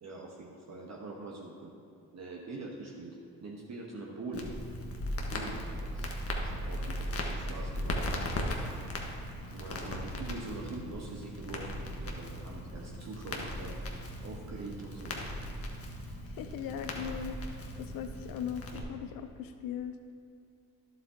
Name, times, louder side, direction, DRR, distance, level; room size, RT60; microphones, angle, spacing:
voice 1, 0.0-1.7 2.1-4.5 5.3-8.0 9.4-14.0 14.2-15.2, right 3 dB, 45° right, -2 dB, 1.3 m, -44 dB
Crackle, 4.3-18.8, left 1 dB, 35° left, 1.4 m, -37 dB
voice 2, 16.2-20.0, left 8 dB, 60° left, 8 dB, 0.6 m, -39 dB
11.0 x 7.7 x 2.9 m, 2.6 s
hypercardioid pair, 55°, 39 cm